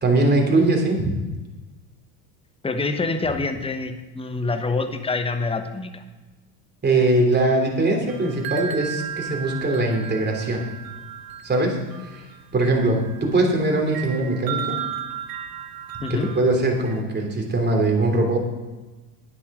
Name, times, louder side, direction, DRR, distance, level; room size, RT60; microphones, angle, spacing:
voice 1, 0.0-1.1 6.8-10.6 11.4-12.2 12.5-14.8 16.1-18.4, right 2 dB, 20° right, 1 dB, 3.3 m, -21 dB
voice 2, 2.6-6.0 16.0-16.3, left 3 dB, 10° left, 8 dB, 1.1 m, -26 dB
sound 1, 8.1-17.0, right 9 dB, 45° right, 1.3 m, -35 dB
10.5 x 9.7 x 4.9 m, 1.2 s
hypercardioid pair, 85°, 48 cm